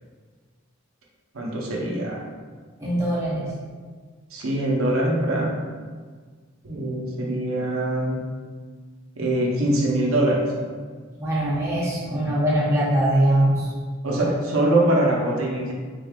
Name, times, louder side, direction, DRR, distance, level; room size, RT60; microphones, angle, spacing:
voice 1, 1.3-2.2 4.3-5.5 6.6-8.2 9.2-10.5 12.2-12.3 14.0-15.7, right 1 dB, 85° right, -3 dB, 0.8 m, -23 dB
voice 2, 2.8-3.4 11.2-13.6, right 1 dB, 15° right, -8 dB, 0.9 m, -22 dB
3.8 x 3.5 x 2.4 m, 1.5 s
head